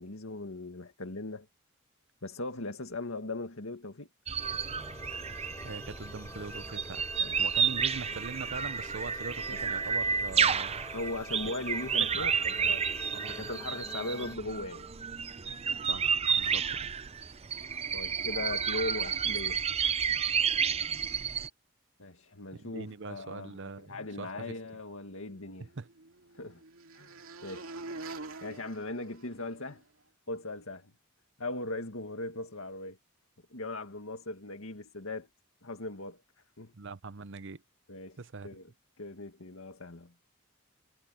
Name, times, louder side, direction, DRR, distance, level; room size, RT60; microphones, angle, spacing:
voice 1, 0.0-1.5 2.2-4.1 7.2-7.4 10.9-12.9 13.3-14.9 17.9-19.6 22.0-25.7 26.3-26.6 26.9-27.8 28.4-29.8 30.3-30.9 31.4-33.0 33.5-35.3 35.6-36.2 36.6-36.7 37.9-38.2 38.4-38.7 39.0-40.1, left 2 dB, 80° left, 2.0 m, -39 dB
sound 1, 4.3-21.5, right 7 dB, 30° right, 0.6 m, -31 dB
sound 2, 4.4-14.4, left 2 dB, 15° left, 6.4 m, -48 dB
voice 2, 5.6-7.0 7.4-10.8 11.4-11.5 11.9-12.8 13.1-13.5 15.8-16.1 16.4-16.9 22.5-24.5 25.8-25.9 36.7-37.6 38.2-38.5, right 4 dB, 60° right, 0.8 m, -42 dB
sound 3, 25.2-29.8, right 3 dB, 85° right, 2.5 m, -46 dB
head